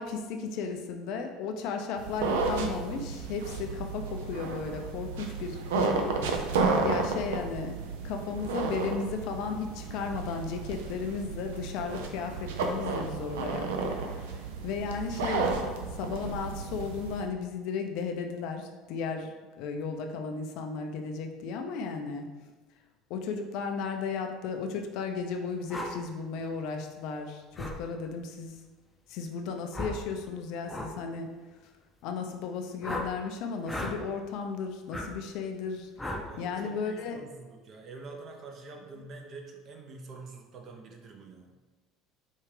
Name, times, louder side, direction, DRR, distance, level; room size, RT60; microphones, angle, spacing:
voice 1, 0.0-6.4 6.8-7.8 8.0-13.9 14.2-15.5 15.9-19.3 19.6-22.3 23.1-28.6 29.1-31.3 32.0-35.9 36.4-37.2, left 5 dB, 70° left, 4 dB, 0.5 m, -35 dB
sound 1, 2.0-17.2, right 4 dB, 90° right, 0.4 m, -32 dB
sound 2, 25.7-25.9 27.6-27.8 29.7-30.0 30.7-30.9 32.8-33.1 33.6-34.0 34.9-35.1 36.0-36.3, left 1 dB, 10° left, 0.6 m, -35 dB
voice 2, 36.3-41.5, right 3 dB, 50° right, 2 dB, 0.7 m, -46 dB
4.4 x 2.4 x 3.2 m, 1.3 s
supercardioid pair, 90°, 0 cm